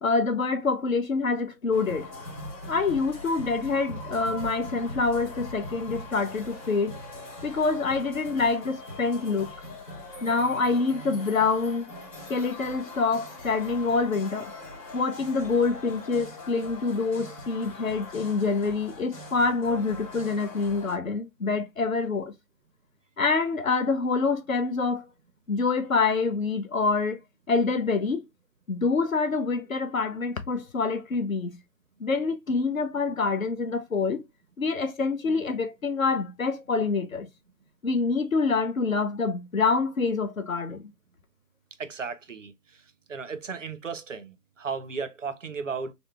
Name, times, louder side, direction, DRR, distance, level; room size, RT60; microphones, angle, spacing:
voice 1, 0.0-2.1 2.7-7.0 7.4-9.5 10.2-11.9 12.3-14.5 14.9-22.3 23.2-25.1 25.5-27.2 27.5-28.2 28.7-31.6 32.0-34.2 34.6-37.3 37.8-40.9, left 4 dB, 55° left, 0.7 m, -26 dB
sound 1, 1.7-21.0, left 2 dB, 20° left, 1.3 m, -41 dB
voice 2, 41.8-42.5 43.1-45.9, right 5 dB, 50° right, 0.5 m, -35 dB
3.8 x 2.0 x 3.2 m
figure-of-eight pair, 165°, 49 cm